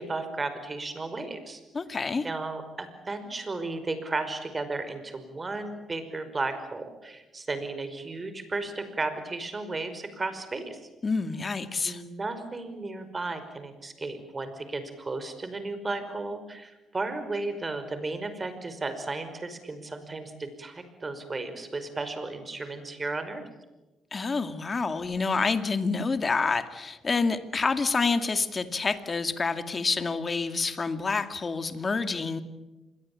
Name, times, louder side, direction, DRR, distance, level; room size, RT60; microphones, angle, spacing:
voice 1, 0.0-1.6 1.9-10.8 11.8-23.5, right 3 dB, 25° right, 10 dB, 5.3 m, -34 dB
voice 2, 1.7-2.3 11.0-12.0 24.1-32.4, left 4 dB, 35° left, 10 dB, 2.3 m, -28 dB
27.5 x 22.0 x 8.7 m, 1.1 s
cardioid pair, 90°, 0 cm